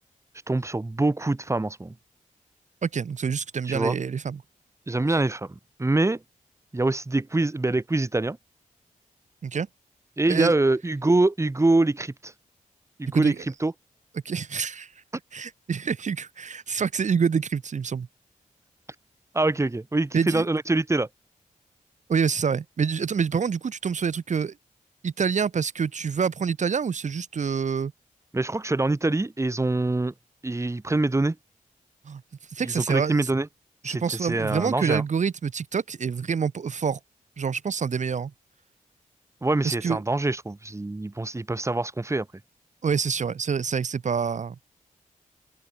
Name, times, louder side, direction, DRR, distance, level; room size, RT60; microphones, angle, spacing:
voice 1, 0.5-1.9 3.7-4.0 4.9-6.2 6.7-8.4 10.2-12.3 13.0-13.3 13.6-13.7 19.3-21.1 28.3-30.1 30.4-31.4 32.6-33.5 33.8-35.0 39.4-42.3, right 2 dB, 20° right, 2.6 m, -24 dB
voice 2, 2.8-4.4 9.4-9.7 10.3-10.5 13.1-13.4 14.2-14.9 15.3-18.1 20.1-20.4 22.1-24.5 25.0-27.9 32.0-32.2 32.5-33.3 33.8-37.0 37.4-38.3 39.6-40.0 42.8-44.5, right 6 dB, 60° right, 1.6 m, -26 dB
open air
wide cardioid pair, 90°, 14 cm